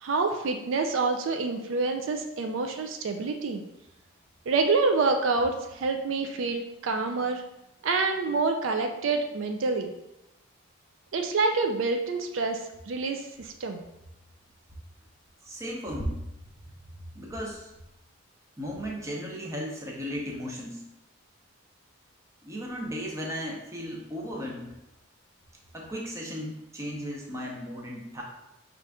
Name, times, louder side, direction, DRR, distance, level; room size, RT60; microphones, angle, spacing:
voice 1, 0.0-3.6 4.5-7.4 7.8-9.9 11.1-12.6 12.9-13.8, right 3 dB, 65° right, 5 dB, 0.4 m, -27 dB
voice 2, 15.4-16.2 17.1-17.7 18.6-20.9 22.4-24.7 25.7-28.2, equal, 15° right, -2 dB, 0.7 m, -35 dB
5.5 x 2.5 x 3.4 m, 0.90 s
head